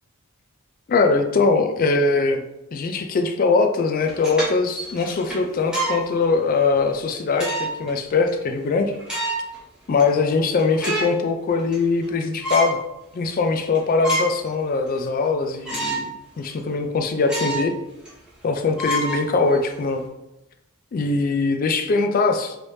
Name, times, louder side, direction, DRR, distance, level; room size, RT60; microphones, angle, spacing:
voice 1, 0.9-2.4 2.7-8.9 9.9-12.8 13.1-16.1 16.4-17.7 18.4-20.0 20.9-22.6, left 4 dB, 40° left, 6 dB, 0.3 m, -21 dB
sound 1, 4.0-6.0 6.6-6.7 7.3-7.9 8.3-8.4 8.9-9.6 10.0-10.1 10.4-11.2 11.6-12.1 12.4-12.8 13.3-13.4 13.7-14.5 14.9-15.0 15.6-16.1 16.4-16.5 17.2-17.7 18.0-18.1 18.8-19.7, right 1 dB, 5° right, 0.9 m, -27 dB
3.2 x 3.2 x 2.6 m, 0.92 s
head